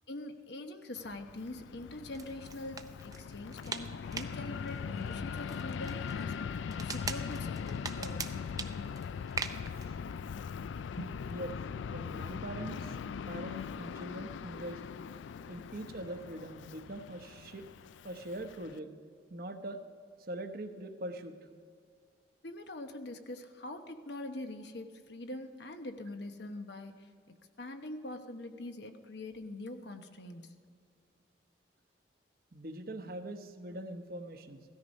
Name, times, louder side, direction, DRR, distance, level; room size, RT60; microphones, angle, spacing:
voice 1, 0.1-6.4 6.7-8.4 11.0-11.1 22.4-30.6, left 2 dB, 60° left, 6 dB, 1.0 m, -44 dB
Fixed-wing aircraft airplane, 1.0-18.8, left 6 dB, 75° left, 0.3 m, -41 dB
sound 1, 2.1-9.9, right 4 dB, 20° right, 0.5 m, -44 dB
voice 2, 11.9-13.0 13.3-14.8 15.5-17.6 18.0-18.9 19.3-19.8 20.3-21.4 32.5-34.6, right 1 dB, 50° right, 6 dB, 0.9 m, -42 dB
16.5 x 13.5 x 5.3 m, 2.2 s
head